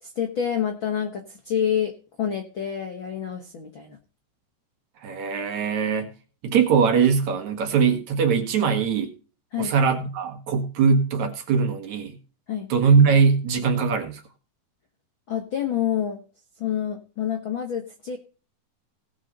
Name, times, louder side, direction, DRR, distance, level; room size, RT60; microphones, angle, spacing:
voice 1, 0.0-1.9 2.2-4.0 9.5-9.8 12.5-12.7 15.3-16.2 16.6-18.2, left 9 dB, 60° left, 4 dB, 1.3 m, -27 dB
voice 2, 5.0-6.1 6.4-9.1 9.6-12.2 12.7-14.2, right 6 dB, 60° right, 6 dB, 2.6 m, -21 dB
18.0 x 6.6 x 4.0 m, 0.36 s
omnidirectional pair, 4.0 m